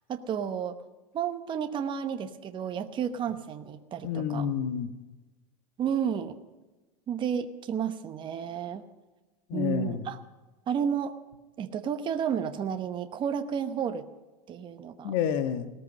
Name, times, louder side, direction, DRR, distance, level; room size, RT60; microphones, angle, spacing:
voice 1, 0.1-0.8 1.1-4.5 5.8-6.4 7.1-8.8 9.5-10.2 10.7-11.1 11.6-14.0 14.5-15.1, right 8 dB, 25° right, 7 dB, 1.0 m, -31 dB
voice 2, 4.0-4.9 9.5-10.1 15.0-15.7, left 8 dB, 50° left, 9 dB, 1.4 m, -29 dB
18.0 x 13.5 x 5.4 m, 1.2 s
supercardioid pair, 135°, 20 cm